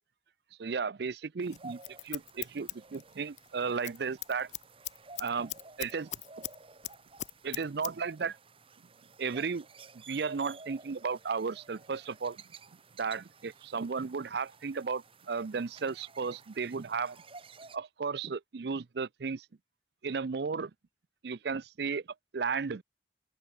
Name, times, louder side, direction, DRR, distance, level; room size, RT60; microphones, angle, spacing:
voice 1, 0.6-4.5 5.2-6.1 7.4-8.4 9.2-9.7 9.9-12.4 13.0-17.2 17.7-19.5 20.0-20.7 21.2-22.0 22.3-22.8, right 5 dB, 60° right, 0.5 m, -34 dB
sound 1, 1.4-17.8, right 4 dB, 30° right, 1.5 m, -54 dB
Scissors, 1.5-3.5 3.8-4.0 4.2-6.6 6.8-7.9 8.2-8.3, left 15 dB, 40° left, 0.3 m, -39 dB
open air
head